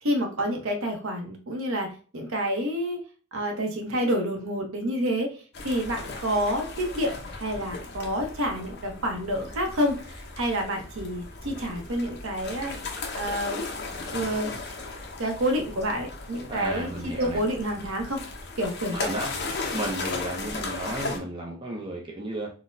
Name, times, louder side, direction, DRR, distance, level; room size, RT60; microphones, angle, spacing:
voice 1, 0.0-3.0 3.3-5.3 5.6-12.7 13.1-13.6 14.1-14.5 15.2-18.2 18.6-19.1, equal, 70° right, 3 dB, 0.7 m, -28 dB
sound 1, 5.5-21.2, left 3 dB, 50° left, 0.6 m, -36 dB
voice 2, 16.5-17.4 18.9-19.3 19.7-22.5, right 1 dB, 20° right, -1 dB, 0.5 m, -33 dB
3.9 x 2.1 x 2.5 m, 0.38 s
head